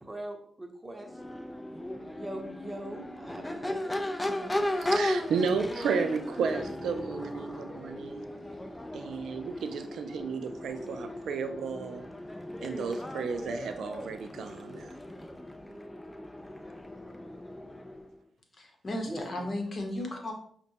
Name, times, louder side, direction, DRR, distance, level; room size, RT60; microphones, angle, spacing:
voice 1, 0.0-1.1 2.0-4.7 19.1-19.5, right 1 dB, 20° right, 3 dB, 0.9 m, -42 dB
Crowd / Race car auto racing / Accelerating revving vroom, 1.0-18.1, left 1 dB, 20° left, 0.5 m, -36 dB
voice 2, 4.8-8.3 8.9-12.0 12.6-15.0, right 5 dB, 80° right, 8 dB, 0.3 m, -33 dB
voice 3, 18.6-20.3, left 1 dB, 50° left, 2 dB, 1.0 m, -35 dB
5.8 x 2.2 x 2.8 m, 0.63 s
cardioid pair, 55°, 0 cm